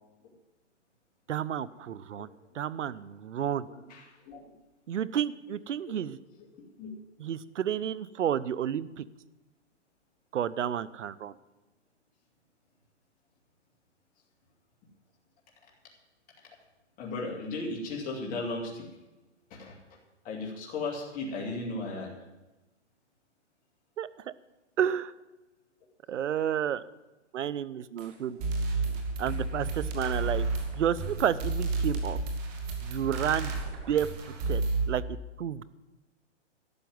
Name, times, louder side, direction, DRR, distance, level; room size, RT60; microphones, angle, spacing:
voice 1, 1.3-2.3 2.5-3.7 4.9-6.2 7.2-9.0 10.3-11.3 24.0-24.1 24.8-25.1 26.1-26.8 27.3-28.4 29.2-30.5 30.7-32.2 32.8-33.6 33.9-34.1 34.5-34.6 34.9-35.0 35.4-35.6, right 9 dB, 80° right, 18 dB, 0.8 m, -30 dB
voice 2, 3.7-4.4 6.8-6.9 17.0-18.9 19.5-19.8 20.2-22.1 28.3-28.4 28.8-28.9, left 3 dB, 20° left, -2 dB, 2.6 m, -36 dB
sound 1, 28.0-28.1 28.4-34.8, right 3 dB, 35° right, 2.4 m, -31 dB
12.0 x 7.1 x 9.3 m, 1.1 s
hypercardioid pair, 145°, 36 cm